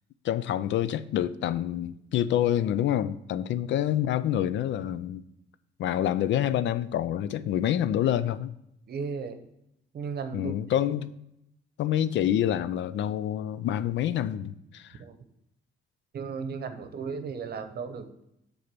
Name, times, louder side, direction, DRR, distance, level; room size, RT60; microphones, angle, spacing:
voice 1, 0.2-5.2 5.8-8.5 10.3-11.1 11.8-15.0, left 11 dB, 70° left, 0.4 m, -27 dB
voice 2, 8.9-9.4 9.9-10.5 15.0-15.2 16.1-18.2, right 5 dB, 55° right, 0.9 m, -35 dB
6.5 x 4.0 x 5.9 m
cardioid pair, 90°, 20 cm